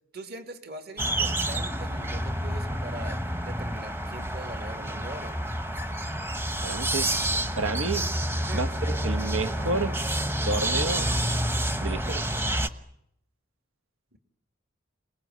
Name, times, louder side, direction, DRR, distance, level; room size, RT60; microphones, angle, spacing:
voice 1, 0.1-5.4 8.4-8.7 14.1-14.2, right 1 dB, 50° right, 2.7 m, -42 dB
sound 1, 1.0-12.7, right 1 dB, 10° right, 1.0 m, -28 dB
voice 2, 6.6-7.1 7.5-8.1 8.5-10.0 10.4-11.1 11.8-12.2, right 3 dB, 80° right, 1.3 m, -30 dB
28.5 x 20.0 x 9.6 m
head